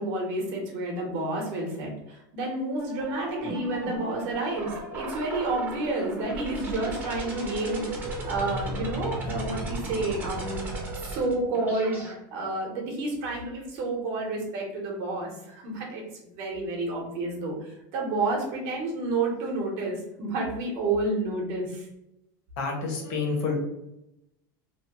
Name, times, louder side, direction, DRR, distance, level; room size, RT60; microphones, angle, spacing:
voice 1, 0.0-10.7 11.0-21.9, right 2 dB, 55° right, -1 dB, 1.0 m, -30 dB
sound 1, 2.8-12.1, right 1 dB, 20° right, 0.7 m, -35 dB
voice 2, 22.6-23.6, left 4 dB, 50° left, 0 dB, 1.0 m, -28 dB
3.0 x 2.2 x 2.9 m, 0.85 s
supercardioid pair, 155°, 10 cm